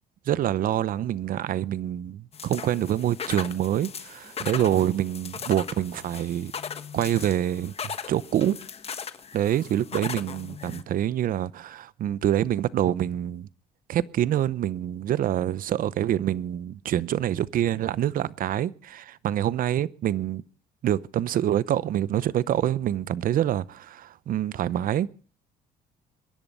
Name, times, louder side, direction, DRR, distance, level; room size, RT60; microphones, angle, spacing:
voice 1, 0.3-6.5 6.9-7.7 8.1-8.6 9.3-13.5 13.9-20.4 20.8-25.1, right 11 dB, 55° right, 0.7 m, -26 dB
sound 1, 2.3-10.8, left 7 dB, 35° left, 1.2 m, -38 dB
23.0 x 10.5 x 5.4 m
cardioid pair, 110°, 17 cm